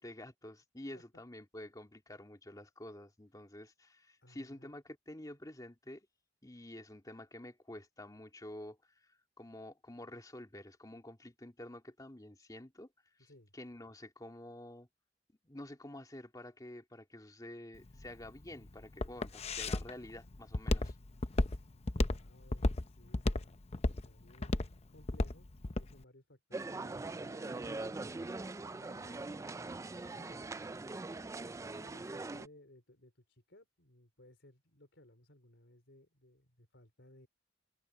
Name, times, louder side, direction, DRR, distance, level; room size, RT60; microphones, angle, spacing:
voice 1, 0.0-6.1 6.4-12.9 13.2-14.9 15.4-20.9, left 1 dB, 20° left, 2.4 m, -49 dB
voice 2, 4.2-4.7 13.2-13.5 21.3-28.3 28.7-30.5 31.6-37.3, left 1 dB, 75° left, 4.7 m, -61 dB
Walk footsteps, 17.8-25.9, left 2 dB, 35° left, 0.7 m, -33 dB
sound 1, 26.5-32.5, right 3 dB, 15° right, 0.3 m, -42 dB
head